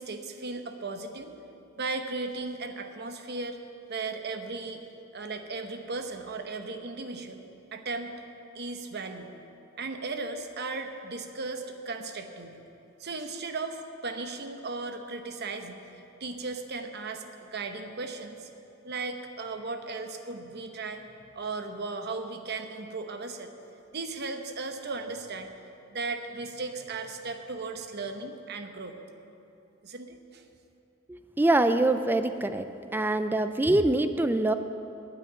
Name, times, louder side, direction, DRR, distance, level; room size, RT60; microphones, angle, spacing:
voice 1, 0.0-1.3 1.8-3.6 3.9-4.8 5.1-7.4 7.7-8.1 8.5-9.3 9.8-12.6 13.0-15.8 16.2-18.5 18.8-21.1 21.3-23.5 23.9-25.5 25.9-29.0 29.8-30.4, right 3 dB, 50° right, 7 dB, 0.9 m, -36 dB
voice 2, 31.1-32.7 32.9-34.5, right 2 dB, 10° right, 10 dB, 0.3 m, -24 dB
9.2 x 8.8 x 9.2 m, 2.8 s
head